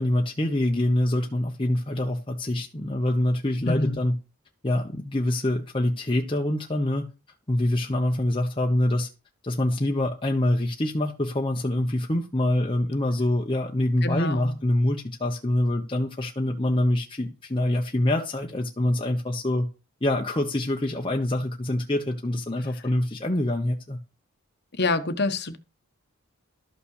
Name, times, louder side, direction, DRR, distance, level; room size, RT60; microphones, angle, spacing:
voice 1, 0.0-4.1 4.6-7.1 7.5-9.1 9.4-19.7 20.0-24.0, left 1 dB, 25° left, 1.0 m, -25 dB
voice 2, 3.6-4.0 14.0-14.6 24.7-25.6, left 2 dB, 50° left, 1.2 m, -26 dB
13.0 x 5.8 x 6.5 m
head